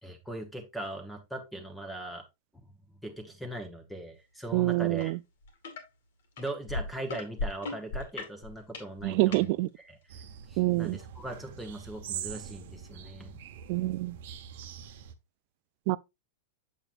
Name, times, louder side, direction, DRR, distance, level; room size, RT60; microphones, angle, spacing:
voice 1, 0.0-2.2 3.0-5.1 6.4-9.5 9.8-10.0 10.5-13.3, right 1 dB, 5° left, 1.0 m, -40 dB
voice 2, 4.5-5.2 9.0-9.7 10.6-11.0 13.7-14.2 15.9-16.0, right 20 dB, 45° right, 0.3 m, -26 dB
sound 1, 5.0-5.1 5.4-5.8 6.4-9.4 10.1-10.2, left 3 dB, 75° left, 2.1 m, -36 dB
sound 2, 10.1-15.1, right 9 dB, 65° right, 0.9 m, -43 dB
7.4 x 7.0 x 2.5 m
supercardioid pair, 155°, 0 cm